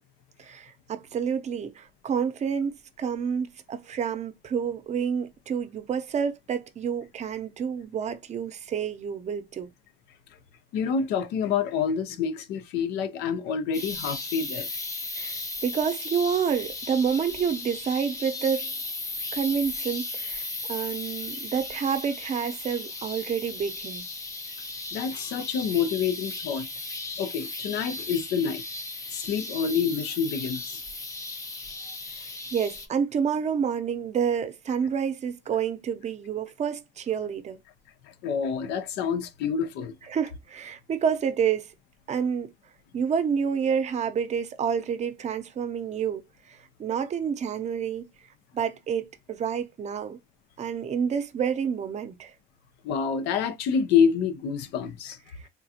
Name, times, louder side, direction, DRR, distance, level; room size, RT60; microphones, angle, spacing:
voice 1, 0.4-9.7 15.1-18.7 19.3-24.1 32.5-37.6 40.1-41.7 42.1-42.5 42.9-46.2 46.5-48.1 48.5-50.2 50.6-52.3, right 7 dB, 40° right, 0.6 m, -29 dB
voice 2, 10.7-14.7 24.9-26.7 27.2-28.6 29.1-30.8 38.0-39.9 52.8-55.2, left 6 dB, 85° left, 0.6 m, -27 dB
sound 1, 13.7-32.9, left 3 dB, 20° left, 0.6 m, -36 dB
3.7 x 2.4 x 2.8 m
cardioid pair, 110°, 17 cm